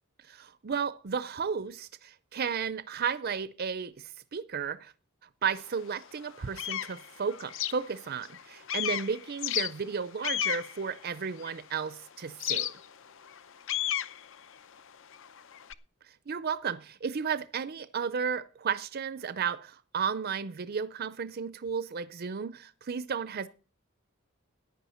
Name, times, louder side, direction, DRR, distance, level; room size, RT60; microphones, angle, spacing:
voice 1, 0.3-4.9 5.4-12.7 16.3-23.5, right 6 dB, 45° right, 0.5 m, -33 dB
sound 1, 5.5-5.6 6.1-8.4 8.7-11.8 12.4-15.7, left 11 dB, 65° left, 0.7 m, -34 dB
14.5 x 10.0 x 4.3 m
head